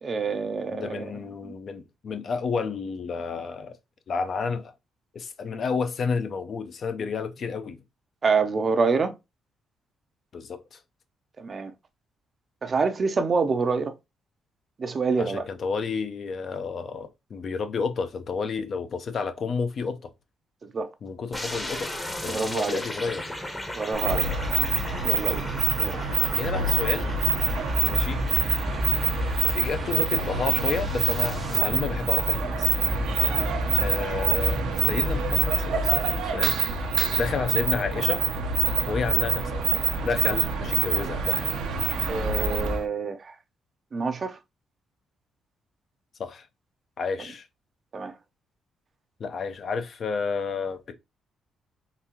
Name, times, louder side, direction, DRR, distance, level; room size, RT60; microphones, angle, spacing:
voice 1, 0.0-1.1 8.2-9.1 11.4-11.7 12.6-13.9 14.8-15.4 20.7-20.9 22.3-22.8 23.7-24.2 25.0-25.4 25.8-26.0 33.2-33.3 42.1-43.2 43.9-44.4 47.9-48.1, right 4 dB, 40° right, 0.5 m, -26 dB
voice 2, 0.7-3.8 4.1-4.7 5.1-7.8 10.3-10.8 15.2-20.1 21.0-23.2 26.3-27.2 27.8-28.4 29.5-32.7 33.8-36.9 37.1-38.2 38.9-39.6 40.0-41.5 46.2-46.5 47.0-47.5 49.2-50.9, left 5 dB, 55° left, 0.6 m, -31 dB
sound 1, 21.3-31.6, left 1 dB, 10° left, 0.8 m, -37 dB
sound 2, 23.9-42.8, right 5 dB, 80° right, 0.7 m, -25 dB
3.8 x 2.7 x 2.8 m
cardioid pair, 90°, 0 cm